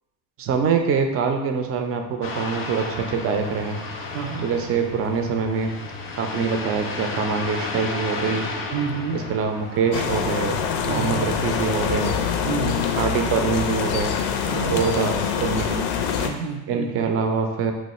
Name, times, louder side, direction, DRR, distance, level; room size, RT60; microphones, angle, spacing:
voice 1, 0.4-4.1 4.4-5.7 6.2-8.5 9.1-10.6 10.8-12.2 13.0-14.2 14.6-15.9 16.7-17.7, right 5 dB, 35° right, 5 dB, 0.4 m, -24 dB
sound 1, 2.2-11.9, left 3 dB, 30° left, 0.5 m, -33 dB
voice 2, 4.1-4.5 8.7-9.2 10.9-11.3 12.4-12.9 14.5-14.8 16.2-17.1, right 6 dB, 85° right, 4 dB, 0.6 m, -29 dB
sound 2, 9.9-16.3, left 7 dB, 75° left, 0.5 m, -25 dB
3.0 x 2.1 x 4.2 m, 0.97 s
supercardioid pair, 95°, 42 cm